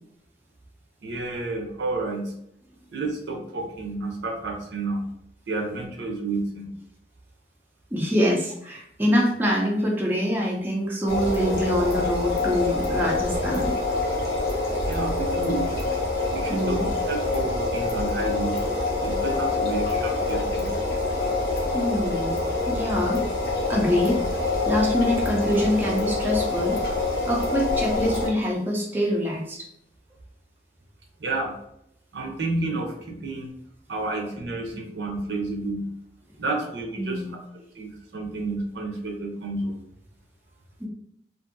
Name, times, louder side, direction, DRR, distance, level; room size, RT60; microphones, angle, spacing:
voice 1, 1.0-2.3 2.9-5.0 5.5-6.7 14.9-15.9 16.3-18.6 19.0-20.7 31.2-31.5 32.1-33.5 33.9-35.9 36.4-39.7, right 2 dB, 80° right, 1 dB, 0.7 m, -30 dB
voice 2, 7.9-13.7 16.5-16.9 21.7-22.4 22.7-23.3 23.7-24.2 24.7-26.8 27.3-29.7 37.0-37.3 40.8-40.9, equal, 10° right, -2 dB, 0.4 m, -25 dB
sound 1, 11.1-28.3, left 3 dB, 60° left, 0.7 m, -26 dB
2.6 x 2.5 x 2.5 m, 0.77 s
head